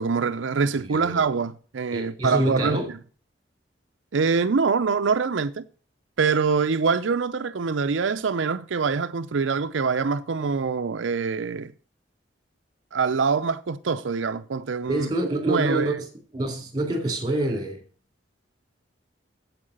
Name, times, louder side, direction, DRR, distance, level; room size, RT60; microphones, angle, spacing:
voice 1, 0.0-3.0 4.1-5.6 6.2-11.7 12.9-15.1 15.5-16.0, right 5 dB, 85° right, 0.5 m, -24 dB
voice 2, 0.7-1.2 1.9-2.9 14.9-16.0 16.3-17.8, right 1 dB, 20° right, 3.0 m, -26 dB
8.6 x 8.2 x 6.4 m
head